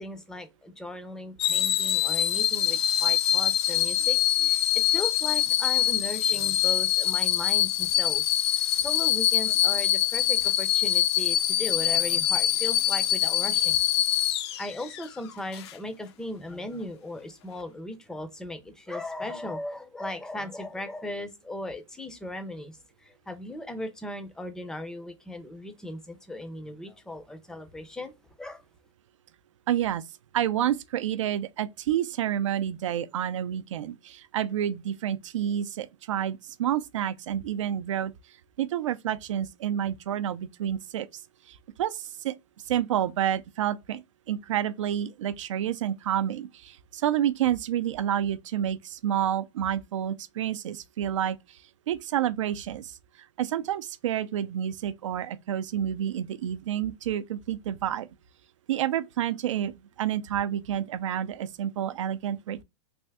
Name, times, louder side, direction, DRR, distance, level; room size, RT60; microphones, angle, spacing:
voice 1, 0.0-4.6 4.9-8.2 8.5-13.8 14.6-22.8 23.0-28.1 28.4-28.6, left 1 dB, 5° left, 0.4 m, -37 dB
sound 1, 1.4-15.0 15.5-15.7, left 12 dB, 60° left, 0.4 m, -24 dB
voice 2, 29.7-30.0 30.3-38.1 38.6-41.1 41.5-42.4 42.7-44.0 44.3-51.4 51.9-53.0 53.4-58.1 58.7-59.7 60.0-62.6, right 10 dB, 85° right, 0.4 m, -29 dB
3.4 x 2.6 x 3.4 m
supercardioid pair, 150°, 16 cm